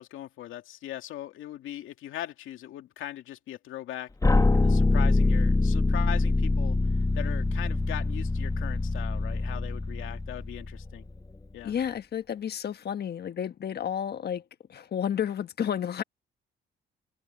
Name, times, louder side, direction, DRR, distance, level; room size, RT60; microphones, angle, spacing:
voice 1, 0.0-6.8 7.1-11.1 11.5-11.7, left 12 dB, 85° left, 2.4 m, -40 dB
sound 1, 4.2-11.1, left 3 dB, 15° left, 1.3 m, -24 dB
voice 2, 11.6-14.4 14.7-16.0, left 9 dB, 55° left, 1.4 m, -31 dB
cardioid pair, 90°, 20 cm